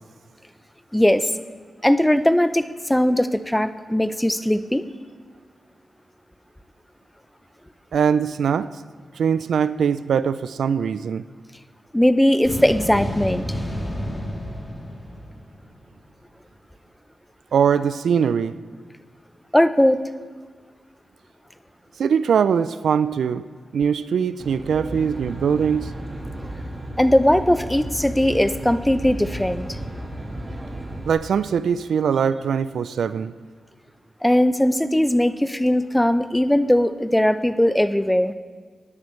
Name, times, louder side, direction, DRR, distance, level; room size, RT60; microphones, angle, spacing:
voice 1, 0.9-1.3 1.8-4.9 11.9-13.4 19.5-20.0 27.0-29.8 34.2-38.3, left 1 dB, 10° left, 12 dB, 0.6 m, -19 dB
voice 2, 7.9-8.7 9.1-11.2 17.5-18.6 22.0-23.5 23.7-25.9 31.1-33.3, right 7 dB, 85° right, 15 dB, 0.3 m, -21 dB
sound 1, 12.4-15.9, equal, 30° left, 2.6 m, -30 dB
Aircraft, 24.4-31.1, right 1 dB, 35° right, 1.7 m, -33 dB
17.0 x 10.5 x 3.2 m, 1.5 s
cardioid pair, 45°, 0 cm